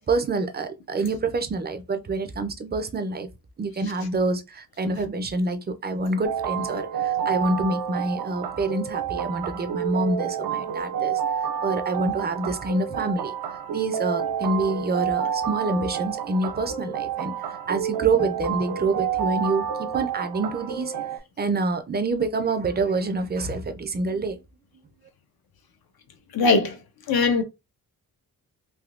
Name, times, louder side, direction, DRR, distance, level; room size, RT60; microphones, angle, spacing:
voice 1, 0.1-3.3 3.6-13.3 13.7-24.4 24.7-24.8, right 3 dB, 30° right, 0.4 m, -27 dB
sound 1, 6.2-21.2, right 8 dB, 80° right, 0.5 m, -29 dB
voice 2, 26.3-26.8 27.1-27.4, left 4 dB, 80° left, 0.7 m, -20 dB
3.5 x 2.6 x 2.4 m
wide cardioid pair, 130°, 36 cm